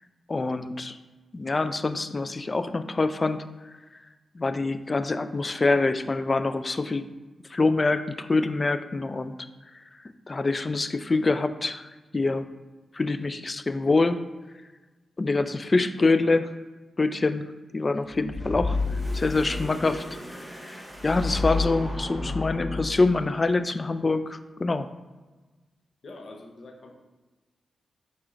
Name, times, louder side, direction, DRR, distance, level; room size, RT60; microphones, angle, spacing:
voice 1, 0.3-1.0 1.3-3.4 4.4-7.0 7.5-9.4 10.3-11.9 12.1-12.4 12.9-14.2 15.2-16.5 17.0-17.5 17.7-18.7 19.1-20.0 20.3-24.9, left 3 dB, 40° left, 10 dB, 0.3 m, -25 dB
voice 2, 17.9-18.5 26.0-27.0, left 2 dB, 65° left, 2 dB, 0.8 m, -45 dB
sound 1, 18.1-23.3, left 3 dB, 5° right, 1.5 m, -31 dB
4.7 x 4.1 x 2.5 m, 1.2 s
cardioid pair, 55°, 0 cm